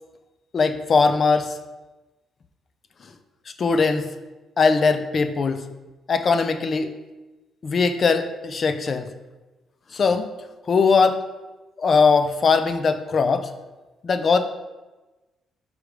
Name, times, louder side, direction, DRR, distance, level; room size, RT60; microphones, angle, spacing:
voice 1, 0.5-1.5 3.6-4.1 4.6-5.6 6.1-6.9 7.6-9.1 9.9-10.3 10.7-11.2 11.8-13.5 14.0-14.4, left 4 dB, 45° left, 9 dB, 0.6 m, -20 dB
5.1 x 4.9 x 4.9 m, 1.1 s
cardioid pair, 90°, 0 cm